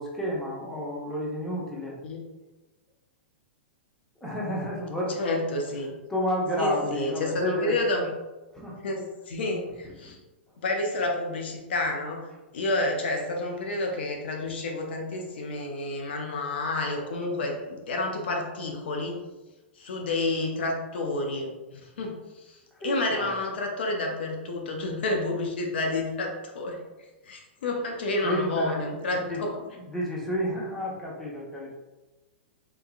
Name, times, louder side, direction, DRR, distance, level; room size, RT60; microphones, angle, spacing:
voice 1, 0.0-2.0 4.2-5.2 5.7-7.8 8.5-8.8 9.8-10.0 22.8-23.3 28.2-31.7, left 1 dB, 5° left, -5 dB, 0.9 m, -31 dB
voice 2, 5.2-6.0 6.6-8.1 8.8-10.2 10.6-12.3 12.5-19.2 19.8-26.8 27.2-29.6, left 2 dB, 70° left, 1 dB, 0.6 m, -30 dB
3.5 x 2.9 x 2.4 m, 1.1 s
hypercardioid pair, 115°, 6 cm